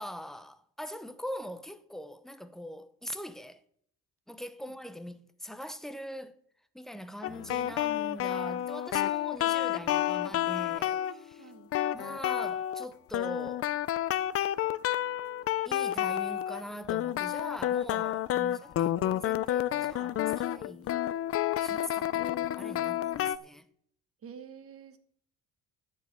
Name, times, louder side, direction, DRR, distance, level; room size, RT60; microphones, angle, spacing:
voice 1, 0.0-3.6 4.3-6.4 6.7-11.5 11.9-13.7 15.6-21.0 21.6-23.7, equal, ahead, 0.7 m, -42 dB
sound 1, 7.2-11.2 11.7-12.9 13.1-16.6 16.9-23.4, left 12 dB, 45° left, 0.5 m, -30 dB
voice 2, 11.4-11.7 22.1-22.4 24.2-25.0, right 7 dB, 45° right, 1.5 m, -49 dB
11.0 x 5.5 x 8.5 m
cardioid pair, 120°, 33 cm